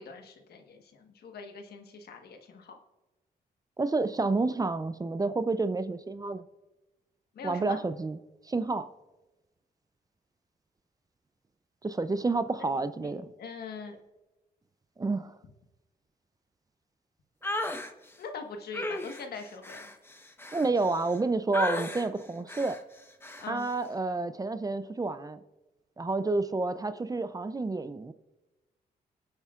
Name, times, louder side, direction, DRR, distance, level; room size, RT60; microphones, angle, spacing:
voice 1, 0.0-2.8 7.3-7.8 12.7-14.0 18.2-19.9 23.4-23.7, left 4 dB, 70° left, 1.4 m, -42 dB
voice 2, 3.8-6.4 7.4-8.2 8.5-8.9 11.8-13.3 15.0-15.3 20.5-22.8 23.5-25.4 26.0-28.1, right 3 dB, 20° right, 0.5 m, -29 dB
sound 1, 17.4-17.9 18.7-21.2 21.5-22.1 22.5-22.8 23.2-23.5, left 1 dB, 15° left, 1.1 m, -35 dB
23.0 x 8.1 x 2.5 m
cardioid pair, 85°, 17 cm